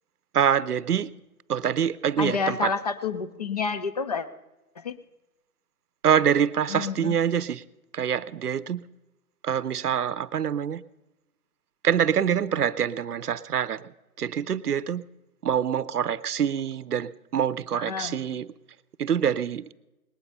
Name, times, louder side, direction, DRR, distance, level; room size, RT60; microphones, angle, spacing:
voice 1, 0.3-1.1 1.5-2.7 6.0-7.6 7.9-8.8 9.4-10.8 11.8-13.9 14.2-15.0 15.4-18.5 19.0-19.7, right 8 dB, 80° right, 17 dB, 0.7 m, -25 dB
voice 2, 2.2-4.3 4.8-4.9 6.7-7.2 17.7-18.2, left 5 dB, 25° left, 11 dB, 0.5 m, -29 dB
20.0 x 8.8 x 5.3 m, 1.0 s
figure-of-eight pair, 140°, 45 cm